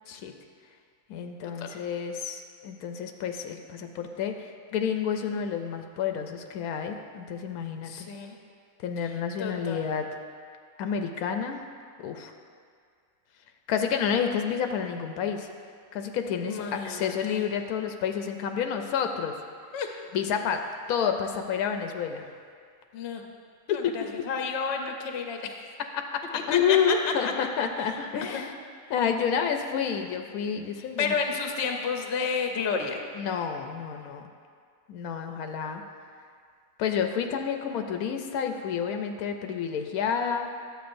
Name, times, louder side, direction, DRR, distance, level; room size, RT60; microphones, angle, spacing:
voice 1, 1.1-8.1 8.8-10.1 10.8-11.6 12.0-12.3 13.7-15.5 15.9-19.3 20.1-22.3 23.7-23.9 25.9-28.5 28.9-31.2 33.2-34.2 34.9-35.8 36.8-40.5, left 7 dB, 90° left, 5 dB, 1.1 m, -29 dB
voice 2, 7.8-8.4 9.0-9.9 16.4-17.5 19.7-19.9 22.9-23.2 23.7-25.5 26.3-27.3 27.8-28.4 28.8-28.9 31.0-33.0, left 5 dB, 55° left, 3 dB, 0.9 m, -31 dB
11.5 x 7.8 x 2.6 m, 2.1 s
omnidirectional pair, 1.5 m